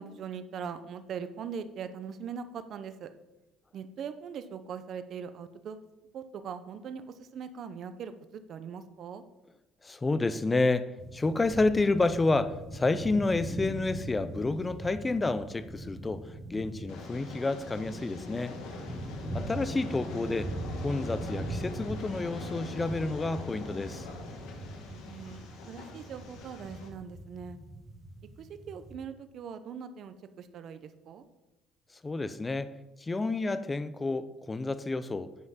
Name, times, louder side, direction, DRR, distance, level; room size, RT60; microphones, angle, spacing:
voice 1, 0.0-3.1 3.7-5.8 6.1-9.2 25.0-27.6 28.4-31.2, right 7 dB, 40° right, 11 dB, 0.6 m, -41 dB
voice 2, 9.8-18.5 19.3-20.5 20.8-24.1 32.0-32.7 33.0-35.3, left 3 dB, 15° left, 13 dB, 0.4 m, -29 dB
sound 1, 11.0-29.0, right 1 dB, 5° right, 1.1 m, -41 dB
Train, 16.9-26.9, left 3 dB, 70° left, 1.8 m, -44 dB
9.5 x 5.7 x 5.7 m, 0.98 s
cardioid pair, 170°, 0 cm